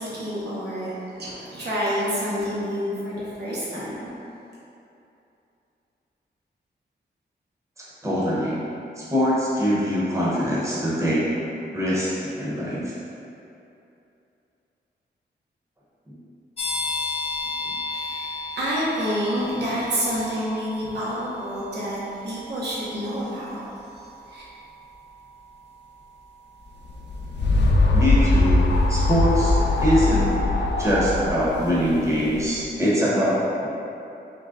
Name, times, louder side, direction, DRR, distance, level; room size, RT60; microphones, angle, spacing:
voice 1, 0.0-4.1 17.8-23.6 24.2-24.4, equal, 65° right, -8 dB, 0.9 m, -28 dB
voice 2, 8.0-8.6 9.0-11.3 11.7-12.9 17.6-17.7 27.9-30.3 30.8-33.7, equal, 15° right, -8 dB, 0.9 m, -23 dB
sound 1, 16.6-29.1, left 3 dB, 35° left, 0.7 m, -36 dB
sound 2, 26.9-32.5, left 2 dB, 75° left, 0.4 m, -21 dB
3.8 x 3.2 x 3.8 m, 2.8 s
wide cardioid pair, 150°, 18 cm